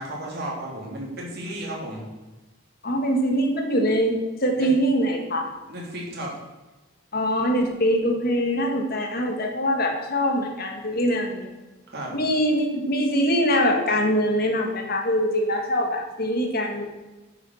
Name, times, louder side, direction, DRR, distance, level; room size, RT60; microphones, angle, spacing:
voice 1, 0.0-2.0 4.5-4.7 5.7-6.3 11.9-12.2, right 1 dB, 50° right, -3 dB, 3.4 m, -33 dB
voice 2, 2.8-5.5 7.1-11.5 12.1-16.9, equal, 45° left, 3 dB, 1.9 m, -23 dB
9.9 x 7.3 x 6.5 m, 1.2 s
head